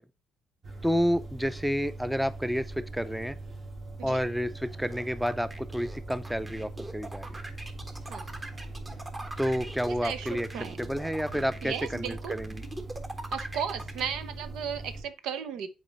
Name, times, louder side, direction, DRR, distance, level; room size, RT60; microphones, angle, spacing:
sound 1, 0.6-15.0, right 2 dB, 45° right, 2.3 m, -41 dB
voice 1, 0.8-3.4 4.0-7.3 9.4-10.5 10.8-12.6, equal, 5° right, 0.5 m, -30 dB
sound 2, 4.9-14.0, right 1 dB, 25° right, 1.2 m, -41 dB
voice 2, 11.6-12.4 13.3-15.7, right 8 dB, 90° right, 0.7 m, -35 dB
7.6 x 4.3 x 4.0 m
cardioid pair, 90°, 0 cm